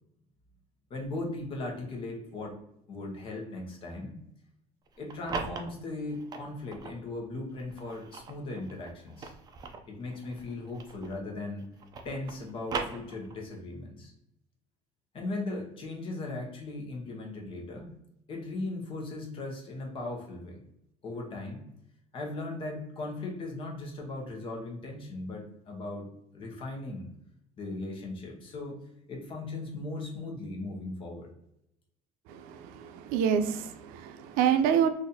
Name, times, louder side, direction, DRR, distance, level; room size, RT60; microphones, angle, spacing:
voice 1, 0.9-2.5 2.9-4.1 5.0-9.3 9.9-11.6 12.0-14.1 15.1-17.9 18.3-20.6 21.0-21.6 22.1-26.1 26.3-27.1 27.6-28.8 29.1-31.3, left 2 dB, 40° left, 1 dB, 0.9 m, -38 dB
sound 1, 4.9-7.0 7.6-11.3 11.6-13.6, right 4 dB, 25° right, 0.4 m, -40 dB
voice 2, 32.3-34.9, right 8 dB, 90° right, 8 dB, 0.4 m, -27 dB
4.0 x 2.6 x 2.7 m, 0.79 s
cardioid pair, 155°, 15 cm